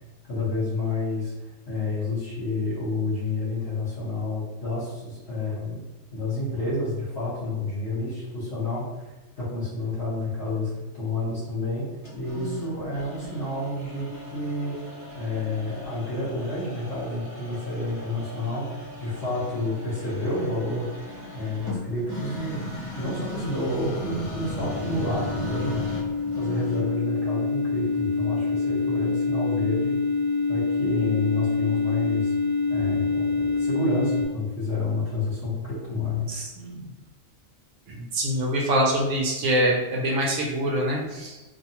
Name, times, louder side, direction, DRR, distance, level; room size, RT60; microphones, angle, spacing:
voice 1, 0.3-1.3 1.7-5.8 6.1-9.1 9.4-11.9 12.2-14.7 15.1-26.1 26.4-29.9 30.5-32.3 32.7-36.4, left 2 dB, 55° left, -9 dB, 1.2 m, -29 dB
sound 1, 12.0-27.0, left 1 dB, 20° left, 0.4 m, -38 dB
sound 2, 24.0-34.3, left 4 dB, 85° left, 1.0 m, -26 dB
voice 2, 36.3-36.9 37.9-41.4, right 1 dB, 70° right, -1 dB, 0.9 m, -25 dB
2.6 x 2.2 x 2.8 m, 1.1 s
omnidirectional pair, 1.3 m